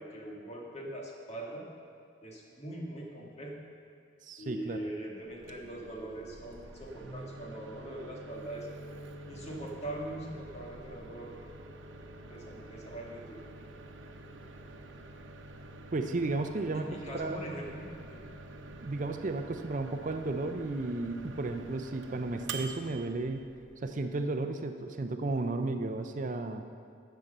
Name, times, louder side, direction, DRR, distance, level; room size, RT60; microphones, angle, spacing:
voice 1, 0.0-1.7 2.2-3.6 4.4-8.7 9.3-11.3 12.3-13.4 16.7-18.2, right 1 dB, 35° left, -2 dB, 1.7 m, -41 dB
voice 2, 4.2-4.8 15.9-17.4 18.8-23.4 23.8-26.6, right 2 dB, 40° right, 6 dB, 0.5 m, -33 dB
Microwave oven, 5.3-24.1, right 2 dB, 85° right, 0.8 m, -47 dB
10.5 x 7.4 x 6.6 m, 2.3 s
head